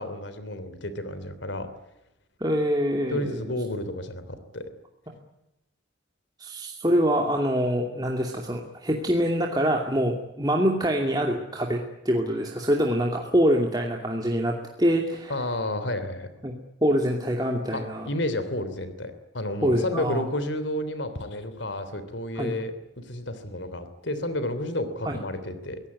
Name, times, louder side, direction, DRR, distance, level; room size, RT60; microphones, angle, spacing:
voice 1, 0.0-1.7 3.1-4.6 15.3-16.3 17.7-25.8, left 1 dB, 70° left, 11 dB, 3.2 m, -31 dB
voice 2, 2.4-3.4 5.1-5.2 6.4-15.3 16.4-16.5 16.8-18.1 19.6-20.2 22.4-22.6 25.0-25.2, equal, 20° right, 1 dB, 2.6 m, -25 dB
24.0 x 18.0 x 9.7 m, 0.91 s
head